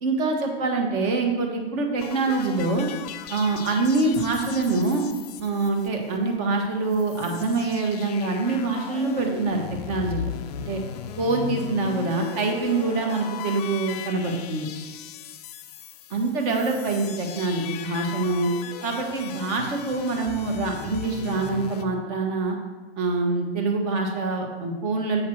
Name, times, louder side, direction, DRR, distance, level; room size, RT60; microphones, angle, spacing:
voice 1, 0.0-2.9 3.3-5.0 5.4-10.3 10.7-10.8 11.2-14.7 16.1-18.5 18.8-22.6 23.0-25.2, right 3 dB, 35° right, 2 dB, 1.4 m, -25 dB
sound 1, 2.0-6.4 6.7-6.8 6.9-21.9, left 9 dB, 40° left, 0.5 m, -37 dB
7.7 x 5.7 x 4.6 m, 1.4 s
hypercardioid pair, 150°, 33 cm